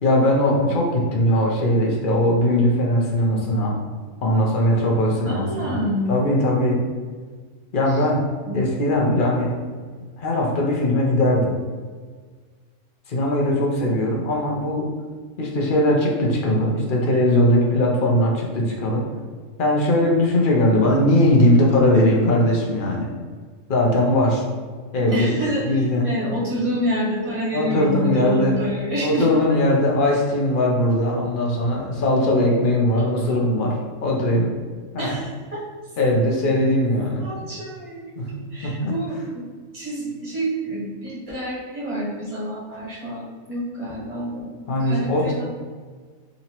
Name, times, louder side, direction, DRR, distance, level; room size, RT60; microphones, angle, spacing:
voice 1, 0.0-3.7 4.2-5.7 6.1-6.8 7.7-8.2 8.5-9.5 10.2-11.5 13.1-14.9 15.4-19.0 19.6-23.1 23.7-24.4 24.9-26.1 27.5-28.6 29.0-33.7 34.0-34.5 34.9-35.2 36.0-37.2 38.2-38.3 38.6-38.9 44.7-45.3, left 1 dB, 50° left, -2 dB, 0.8 m, -20 dB
voice 2, 5.2-6.1 8.5-8.6 25.1-29.3 35.0-35.6 37.2-39.5 39.7-44.5 44.8-45.5, equal, 30° right, -8 dB, 1.2 m, -28 dB
3.8 x 2.8 x 2.9 m, 1.5 s
omnidirectional pair, 1.3 m